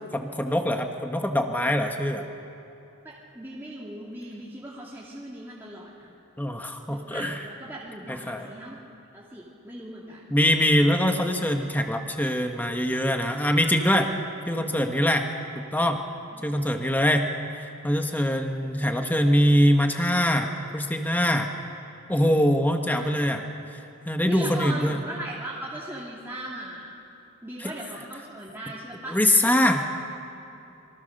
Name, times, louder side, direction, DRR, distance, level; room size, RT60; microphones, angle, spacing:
voice 1, 0.1-2.2 6.4-7.4 8.1-8.5 10.3-14.1 14.5-15.3 15.5-16.0 16.4-17.3 17.5-21.5 22.1-23.5 24.1-25.0 27.6-27.7 29.1-29.9, equal, 10° left, 4 dB, 1.3 m, -23 dB
voice 2, 3.0-6.1 6.9-8.8 9.1-10.3 16.3-16.5 22.9-23.4 24.2-27.0 27.4-29.2, right 1 dB, 10° right, -7 dB, 2.4 m, -38 dB
27.5 x 24.0 x 6.6 m, 2.9 s
head